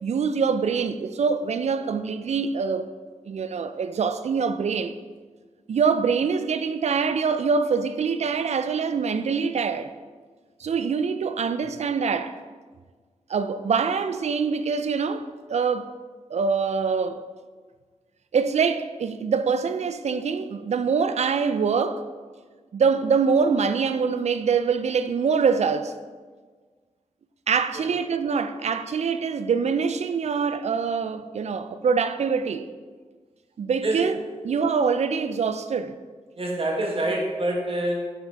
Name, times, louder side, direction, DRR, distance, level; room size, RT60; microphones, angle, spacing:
voice 1, 0.0-2.9 3.3-5.0 5.7-9.9 10.6-12.3 13.3-15.9 16.3-17.3 18.3-22.0 22.7-25.9 27.5-32.7 33.6-34.2 34.4-36.0, right 5 dB, 65° right, 0.4 m, -24 dB
voice 2, 36.4-38.0, right 1 dB, 50° right, 1.3 m, -26 dB
6.0 x 5.7 x 4.0 m
wide cardioid pair, 80°, 12 cm